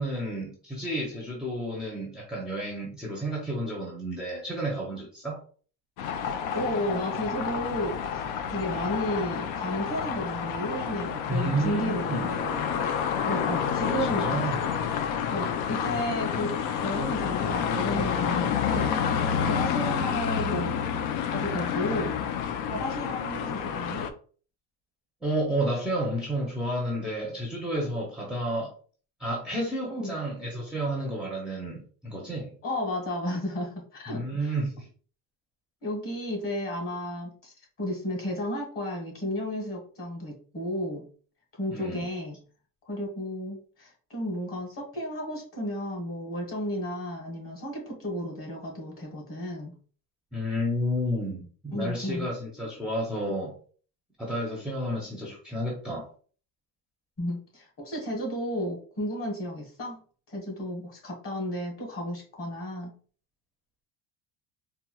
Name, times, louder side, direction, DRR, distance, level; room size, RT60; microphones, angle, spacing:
voice 1, 0.0-5.4 11.3-12.3 14.0-14.6 25.2-28.7 29.2-32.5 34.1-34.9 41.7-42.1 50.3-53.6 54.2-56.1, right 1 dB, ahead, -3 dB, 0.5 m, -31 dB
sound 1, 6.0-24.1, left 7 dB, 80° left, 0.6 m, -29 dB
voice 2, 6.5-8.2 8.5-12.7 13.2-14.5 15.3-16.5 16.8-19.0 19.4-20.8 21.2-22.2 22.7-24.1 29.9-30.2 32.6-34.5 35.8-41.1 41.5-42.4 42.9-49.7 51.7-52.3 57.2-60.0 60.3-62.9, equal, 30° left, 1 dB, 1.3 m, -33 dB
4.3 x 2.1 x 2.3 m, 0.41 s
cardioid pair, 150°, 42 cm